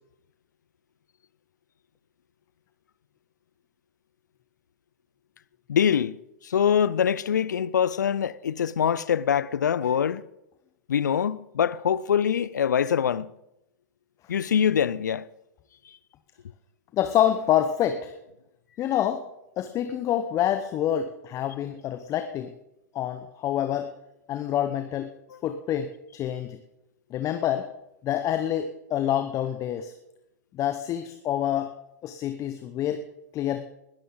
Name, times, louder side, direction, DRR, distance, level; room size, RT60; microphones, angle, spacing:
voice 1, 5.7-10.2 10.9-13.3 14.3-15.2, left 8 dB, 75° left, 0.6 m, -24 dB
voice 2, 16.9-18.1 18.8-19.2 19.6-22.5 22.9-23.9 24.3-25.1 25.4-25.9 26.1-26.6 27.1-27.7 28.0-29.9 30.5-31.7 32.0-33.0 33.3-33.6, left 11 dB, 35° left, 1.0 m, -27 dB
20.5 x 12.5 x 3.9 m
figure-of-eight pair, 95°, 10 cm